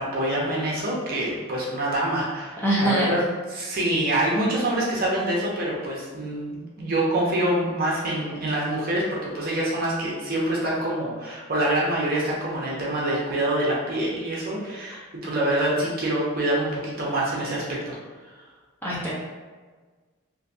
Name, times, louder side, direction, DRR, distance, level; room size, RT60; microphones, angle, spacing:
voice 1, 0.0-3.2 3.5-18.0, right 1 dB, 45° right, -4 dB, 0.7 m, -26 dB
voice 2, 2.6-3.2 18.8-19.1, right 1 dB, 10° left, -8 dB, 0.6 m, -23 dB
3.1 x 2.6 x 2.6 m, 1.4 s
head